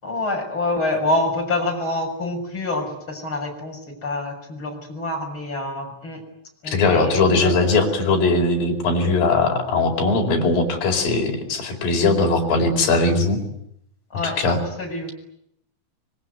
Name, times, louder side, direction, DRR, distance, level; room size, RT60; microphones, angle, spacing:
voice 1, 0.0-6.2 6.6-7.5 14.1-15.1, left 2 dB, 25° left, 2 dB, 7.0 m, -26 dB
voice 2, 6.6-13.4 14.2-14.6, left 3 dB, 45° left, 1 dB, 6.3 m, -20 dB
25.5 x 23.5 x 9.5 m, 0.74 s
omnidirectional pair, 5.6 m